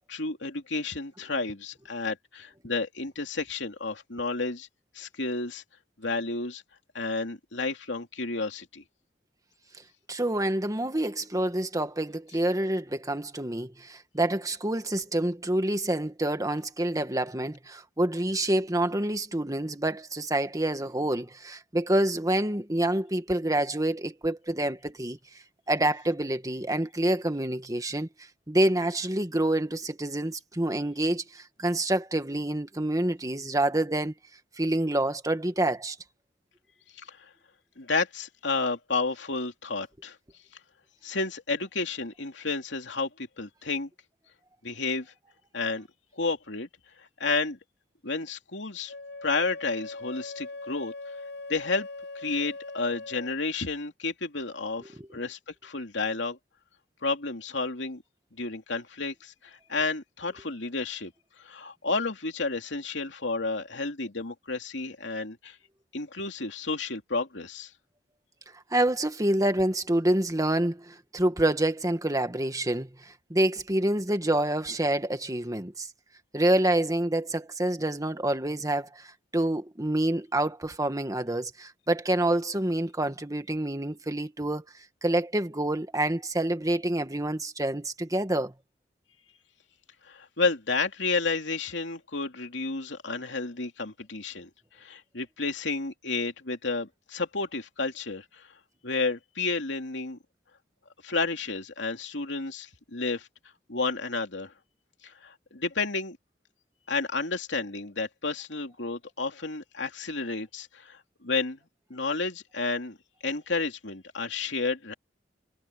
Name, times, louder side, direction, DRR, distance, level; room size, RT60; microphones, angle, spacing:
voice 1, 0.1-4.7 4.9-5.6 6.0-6.6 6.9-8.8 36.9-37.3 37.8-40.2 41.0-43.9 44.6-45.1 45.5-45.9 46.2-46.7 47.0-47.6 48.0-48.9 49.2-50.9 51.5-51.9 52.1-56.4 57.0-58.0 58.3-61.1 61.4-65.6 65.9-67.7 90.0-94.5 94.8-98.5 98.8-100.2 101.0-103.3 103.7-104.5 105.0-106.2 106.9-111.6 111.9-113.0 113.2-114.9, left 3 dB, 85° left, 2.8 m, -31 dB
voice 2, 10.1-25.2 25.7-28.1 28.5-34.1 34.6-36.0 55.0-55.1 68.7-75.9 76.3-84.6 85.0-88.5, right 1 dB, 20° right, 1.7 m, -27 dB
Wind instrument woodwind instrument, 48.9-53.4, left 3 dB, 70° left, 5.9 m, -40 dB
head